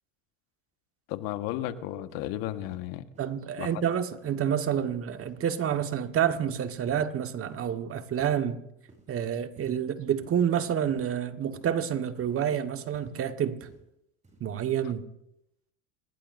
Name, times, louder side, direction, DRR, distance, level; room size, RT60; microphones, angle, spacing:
voice 1, 1.1-3.0 3.6-3.7, left 13 dB, 65° left, 1.5 m, -33 dB
sound 1, 2.1-2.3 2.6-2.8 3.1-3.3 3.7-3.8 4.2-4.3 4.7-4.9 5.2-5.4 5.7-5.9 6.3-6.5 6.9-7.1 7.5-7.7 8.2-8.4 8.9-9.1 9.6-9.8 10.2-10.4 10.9-11.1 11.5-11.7 12.2-12.4 12.9-13.2 13.6-13.8 14.2-14.4, right 2 dB, 20° right, 7.2 m, -53 dB
voice 2, 3.2-8.6 9.1-13.6 14.4-15.1, right 9 dB, 35° right, 1.5 m, -28 dB
27.0 x 19.0 x 2.6 m
hypercardioid pair, 95°, 38 cm